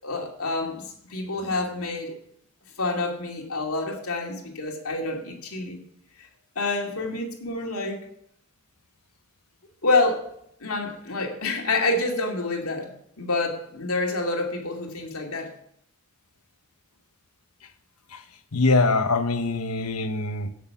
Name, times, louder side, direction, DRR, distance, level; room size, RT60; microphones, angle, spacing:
voice 1, 0.0-2.1 2.8-5.8 6.6-8.0 9.8-10.3 10.6-12.9 13.2-15.5, left 2 dB, 75° left, 1 dB, 2.5 m, -27 dB
voice 2, 18.5-20.5, left 3 dB, 90° left, 9 dB, 1.2 m, -23 dB
16.0 x 6.7 x 5.9 m, 0.71 s
head